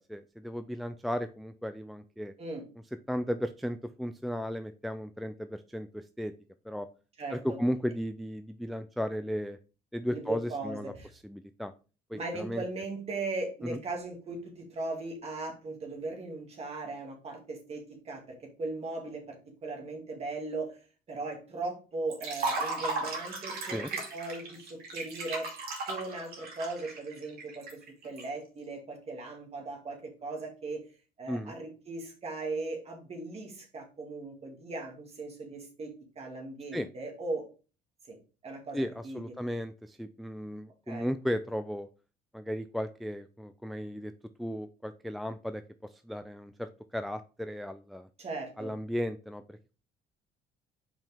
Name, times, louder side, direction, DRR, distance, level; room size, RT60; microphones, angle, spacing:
voice 1, 0.0-2.3 3.1-6.3 6.7-6.9 7.3-9.6 9.9-10.9 11.2-11.7 12.1-12.6 13.6-13.8 23.7-23.9 31.3-31.5 36.7-36.9 38.7-41.9 42.3-44.1 44.4-45.6 46.1-48.1 48.6-49.7, equal, ahead, 10 dB, 0.3 m, -35 dB
voice 2, 10.1-11.1 12.1-20.8 21.1-25.5 25.9-30.8 31.2-37.4 38.1-38.2 38.4-39.3 40.9-41.1 48.2-48.7, right 3 dB, 35° right, 1 dB, 2.3 m, -38 dB
Liquid, 22.1-28.2, right 3 dB, 65° right, 2.4 m, -36 dB
5.4 x 5.2 x 3.5 m, 0.35 s
cardioid pair, 110°, 17 cm